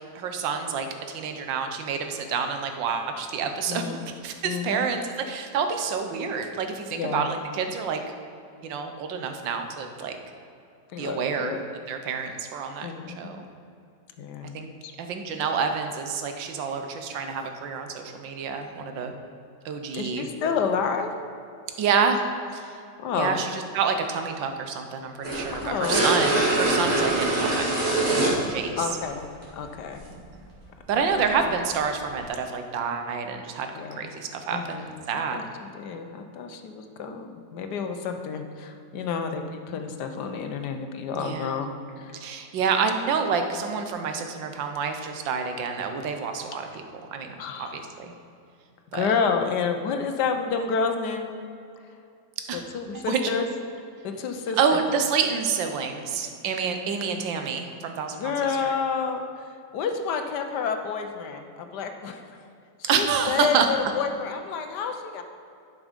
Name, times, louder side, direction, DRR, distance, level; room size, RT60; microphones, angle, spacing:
voice 1, 0.1-8.0 8.6-10.2 11.0-11.6 11.9-13.5 14.5-14.7 15.0-19.1 19.6-20.3 21.8-22.2 22.5-22.8 23.1-28.1 28.5-28.9 30.1-30.2 30.9-33.7 34.0-35.5 41.1-41.6 42.1-46.8 47.1-48.1 48.9-49.1 52.4-52.6 52.9-53.5 54.6-58.3 58.6-58.7 62.8-63.7, right 6 dB, 85° right, 6 dB, 1.6 m, -28 dB
voice 2, 3.7-4.0 4.4-4.9 6.9-7.2 10.9-11.6 12.8-13.4 14.2-14.6 14.8-14.9 18.8-19.2 19.9-21.1 23.0-23.4 25.5-26.0 28.8-29.3 29.5-30.1 31.1-31.2 33.7-34.0 34.5-34.9 35.3-42.2 47.4-47.8 48.9-51.3 52.5-53.5 54.0-54.8 58.2-59.5 59.7-62.4 62.8-65.2, left 5 dB, 70° left, 6 dB, 1.3 m, -30 dB
sound 1, 25.2-28.5 29.4-29.5 31.2-31.3, right 2 dB, 35° right, 2.4 m, -23 dB
11.0 x 6.1 x 5.2 m, 2.5 s
omnidirectional pair, 2.0 m